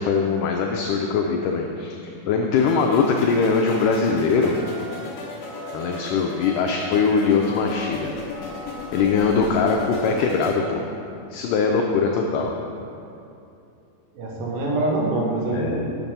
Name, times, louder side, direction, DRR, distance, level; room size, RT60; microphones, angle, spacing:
voice 1, 0.0-4.6 5.7-8.1 8.9-10.8 11.3-12.5 15.5-15.8, left 5 dB, 85° left, 2 dB, 1.8 m, -21 dB
sound 1, 2.5-10.5, left 3 dB, 60° left, 2.3 m, -37 dB
sound 2, 2.5-3.1 3.5-4.0 4.5-5.0 5.4-6.0 6.4-6.9 7.4-7.9 8.3-8.9 9.3-9.8, right 1 dB, 50° right, 2.4 m, -40 dB
voice 2, 14.1-15.9, right 2 dB, 70° right, -2 dB, 2.7 m, -24 dB
7.2 x 6.6 x 5.4 m, 2.8 s
omnidirectional pair, 4.3 m